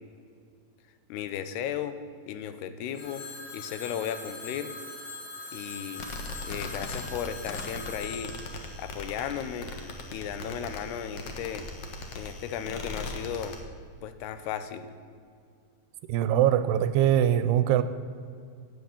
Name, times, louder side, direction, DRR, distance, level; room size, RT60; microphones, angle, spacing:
voice 1, 1.1-2.0 2.3-3.2 3.5-4.7 5.5-6.1 6.4-8.4 8.8-9.7 10.1-11.7 12.1-13.6 14.0-14.9, left 9 dB, 80° left, 11 dB, 2.7 m, -35 dB
Telephone, 2.9-9.8, left 3 dB, 45° left, 5.0 m, -42 dB
sound 1, 5.9-13.6, left 3 dB, 65° left, 1.5 m, -39 dB
voice 2, 16.1-17.8, right 11 dB, 85° right, 12 dB, 2.6 m, -22 dB
17.0 x 7.9 x 7.2 m, 2.3 s
omnidirectional pair, 4.7 m